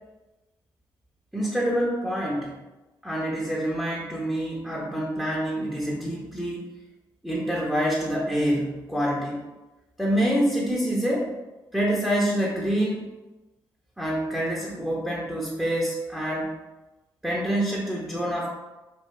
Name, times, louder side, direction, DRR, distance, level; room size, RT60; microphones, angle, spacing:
voice 1, 1.3-2.5 3.0-6.7 7.2-9.4 10.0-11.3 11.7-13.1 14.0-16.5 17.2-18.5, equal, 5° right, -5 dB, 1.1 m, -26 dB
5.2 x 2.8 x 3.3 m, 1.1 s
cardioid pair, 75°, 9 cm